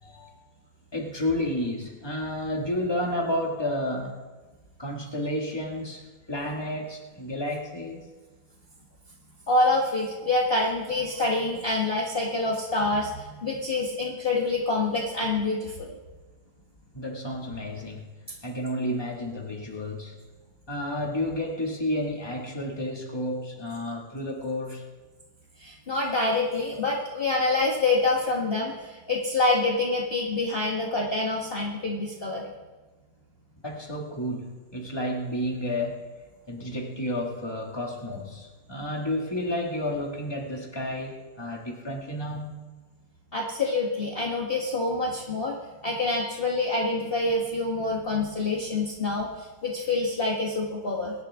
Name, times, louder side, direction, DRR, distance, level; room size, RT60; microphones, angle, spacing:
voice 1, 0.0-0.4 0.9-4.2 4.8-8.1 16.9-18.1 18.4-20.1 20.7-24.9 33.6-36.1 36.5-42.6, left 1 dB, 15° left, -1 dB, 2.2 m, -31 dB
voice 2, 9.5-15.8 25.6-32.5 43.3-45.5 45.8-51.1, left 2 dB, 35° left, -3 dB, 1.7 m, -26 dB
23.0 x 11.0 x 3.7 m, 1.3 s
omnidirectional pair, 1.9 m